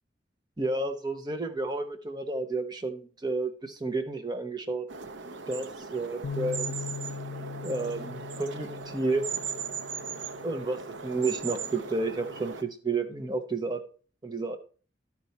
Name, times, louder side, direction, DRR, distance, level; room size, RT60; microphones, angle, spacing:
voice 1, 0.6-4.9 5.5-6.7 7.6-9.2 10.4-13.8 14.2-14.6, right 3 dB, 25° right, 5 dB, 0.9 m, -31 dB
sound 1, 4.9-12.6, right 5 dB, 80° right, 0.6 m, -38 dB
Bass guitar, 6.2-12.5, left 5 dB, 90° left, 0.4 m, -41 dB
12.0 x 4.6 x 4.1 m, 0.39 s
head